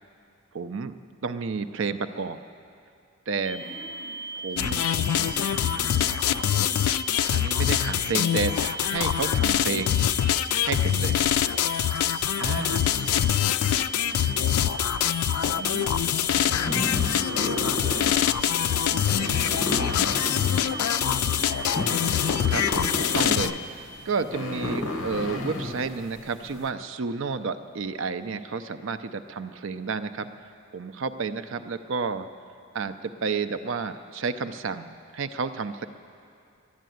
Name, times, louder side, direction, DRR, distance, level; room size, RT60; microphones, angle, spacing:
voice 1, 0.5-0.9 1.2-2.4 3.3-3.6 4.4-4.8 5.2-5.3 7.3-10.0 10.5-11.2 12.4-12.9 15.5-15.9 19.1-19.6 22.5-23.6 24.0-30.3 30.7-32.3 32.7-35.9, right 5 dB, 60° right, 11 dB, 0.5 m, -31 dB
sound 1, 3.4-23.4, right 3 dB, 15° left, 4.4 m, -37 dB
voice 2, 3.6-6.8 12.3-14.9 15.3-16.8 17.2-22.3, equal, 20° right, -9 dB, 4.6 m, -43 dB
sound 2, 4.6-23.5, left 10 dB, 80° left, 0.3 m, -24 dB
sound 3, 16.2-26.7, left 2 dB, 60° left, 1.1 m, -32 dB
11.0 x 11.0 x 9.2 m, 2.4 s
head